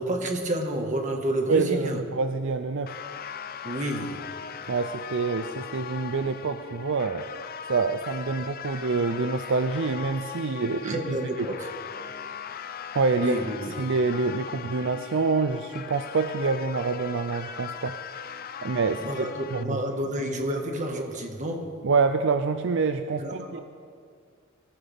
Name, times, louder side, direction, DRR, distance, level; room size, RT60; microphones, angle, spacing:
voice 1, 0.0-2.0 3.6-4.2 10.6-11.7 13.2-13.7 19.0-21.8 23.2-23.6, right 1 dB, 35° right, 3 dB, 1.7 m, -30 dB
voice 2, 1.5-3.0 4.7-7.2 7.7-11.6 12.9-13.5 13.8-17.9 18.6-19.3 19.5-19.8 21.8-23.6, right 4 dB, 60° right, 8 dB, 0.5 m, -26 dB
sound 1, 2.9-19.6, left 7 dB, 45° left, 0.6 m, -39 dB
24.0 x 14.5 x 3.6 m, 2.2 s
head